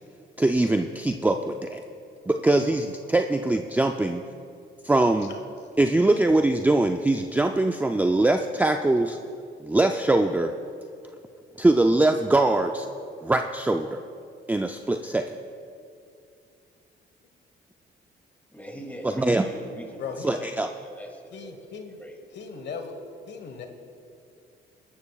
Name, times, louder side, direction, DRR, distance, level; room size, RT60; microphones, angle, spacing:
voice 1, 0.4-1.8 2.3-4.2 4.8-5.3 5.8-9.2 9.6-10.5 11.6-12.9 13.2-14.0 14.5-15.3 19.0-19.5 20.2-20.7, right 2 dB, 10° right, 5 dB, 0.4 m, -22 dB
voice 2, 18.5-21.7 22.0-22.2, equal, 10° left, 1 dB, 2.5 m, -41 dB
voice 3, 20.0-20.3 21.3-22.0 22.3-22.9 23.3-23.7, left 5 dB, 60° left, 5 dB, 1.3 m, -37 dB
20.5 x 12.0 x 2.4 m, 2.5 s
cardioid pair, 90°, 20 cm